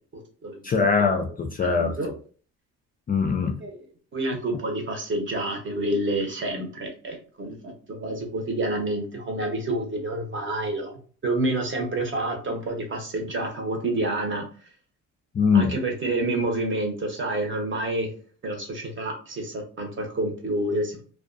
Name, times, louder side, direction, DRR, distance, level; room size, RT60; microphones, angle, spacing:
voice 1, 0.1-0.6 1.6-2.1 3.6-3.8 4.1-10.9 11.2-14.4 15.5-18.1 18.4-21.0, right 1 dB, 40° right, 2 dB, 0.9 m, -28 dB
voice 2, 0.6-1.9 3.1-3.6 15.3-15.7, left 5 dB, 30° left, 4 dB, 0.4 m, -22 dB
2.4 x 2.3 x 2.5 m, 0.42 s
cardioid pair, 90°, 30 cm